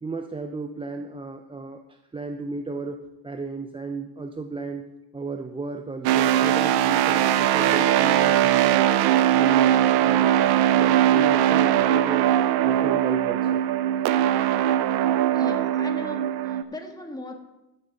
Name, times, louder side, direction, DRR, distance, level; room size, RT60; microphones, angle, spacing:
voice 1, 0.0-9.0 9.3-12.3 12.6-13.6, right 4 dB, 15° right, 6 dB, 0.5 m, -34 dB
sound 1, 6.0-16.6, right 11 dB, 85° right, 0.7 m, -20 dB
voice 2, 15.3-17.3, left 2 dB, 10° left, 3 dB, 1.7 m, -38 dB
13.0 x 6.1 x 5.3 m, 0.97 s
cardioid pair, 100°, 37 cm